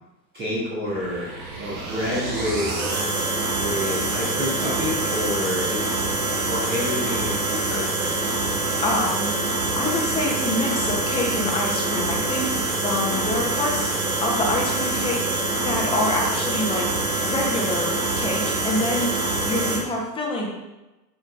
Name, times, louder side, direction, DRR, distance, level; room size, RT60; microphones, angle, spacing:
voice 1, 0.3-1.3 1.6-2.7 3.6-6.0 6.5-8.1, left 1 dB, 20° right, -8 dB, 1.5 m, -28 dB
sound 1, 0.9-19.8, right 2 dB, 55° right, 1.5 m, -25 dB
voice 2, 8.8-9.5 9.7-13.9 14.2-15.3 15.6-16.9 17.2-20.5, left 2 dB, 10° left, -1 dB, 1.0 m, -26 dB
7.4 x 5.2 x 2.6 m, 1.0 s
figure-of-eight pair, 100°, 50 cm